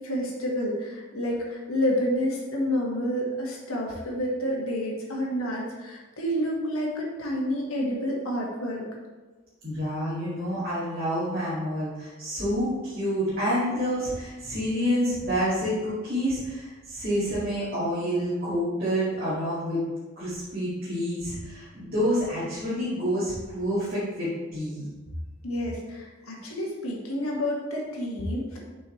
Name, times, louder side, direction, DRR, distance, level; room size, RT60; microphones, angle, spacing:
voice 1, 0.0-8.8 25.4-28.6, equal, 80° left, -2 dB, 1.6 m, -29 dB
voice 2, 9.6-19.8 20.2-24.8, equal, 45° right, -12 dB, 2.3 m, -28 dB
7.2 x 5.6 x 3.2 m, 1.3 s
head